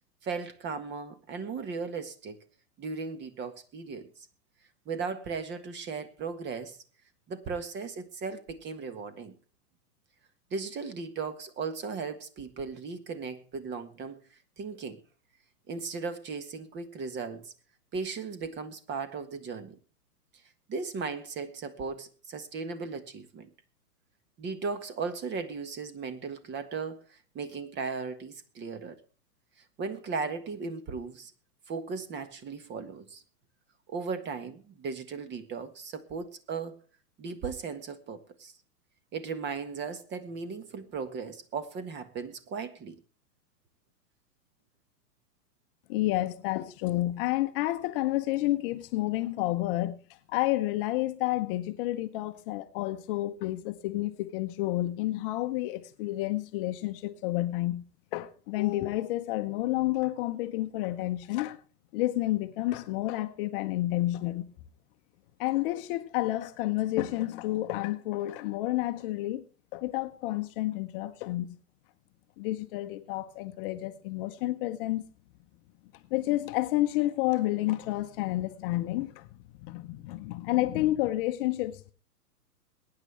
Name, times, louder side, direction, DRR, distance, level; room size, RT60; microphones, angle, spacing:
voice 1, 0.2-2.4 2.8-4.1 4.8-6.8 7.3-9.3 10.5-14.2 14.6-15.0 15.7-17.5 17.9-19.8 20.7-23.5 24.4-29.0 29.8-31.3 31.7-33.2 33.9-36.8 37.2-38.5 39.1-43.0, right 5 dB, 25° right, 1.5 m, -37 dB
voice 2, 45.9-50.0 50.3-57.8 58.1-61.6 61.9-64.5 65.4-69.4 69.7-71.6 72.4-75.0 76.1-79.3 79.6-81.9, left 16 dB, 35° left, 0.9 m, -30 dB
22.0 x 9.9 x 3.4 m
hypercardioid pair, 115°, 46 cm